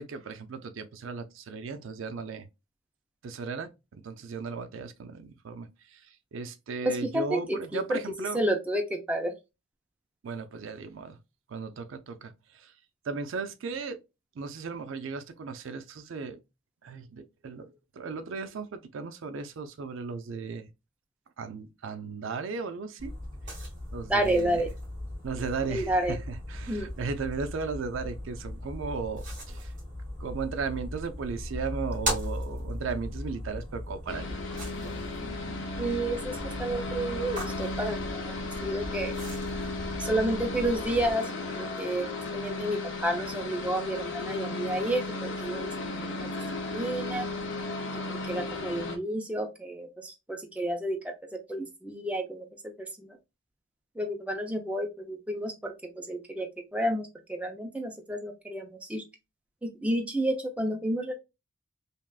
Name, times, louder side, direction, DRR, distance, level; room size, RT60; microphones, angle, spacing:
voice 1, 0.0-2.5 3.2-6.0 6.3-8.4 10.2-11.2 11.5-12.3 12.6-12.7 13.1-14.0 14.4-16.4 16.8-20.7 21.4-23.1 23.9-24.7 25.2-29.7 30.2-34.3, right 5 dB, 70° right, 0.4 m, -36 dB
voice 2, 6.8-8.0 8.3-9.3 24.1-24.7 25.7-26.2 26.7-26.9 35.8-39.1 40.0-41.3 41.6-42.1 42.3-46.3 46.7-47.3 48.1-51.1 51.5-52.5 53.0-53.1 54.0-59.0 59.6-61.1, right 1 dB, 5° right, 0.4 m, -30 dB
sound 1, 23.0-41.1, equal, 40° right, 1.5 m, -38 dB
sound 2, 34.1-49.0, left 3 dB, 65° left, 0.6 m, -35 dB
3.3 x 2.4 x 2.3 m
head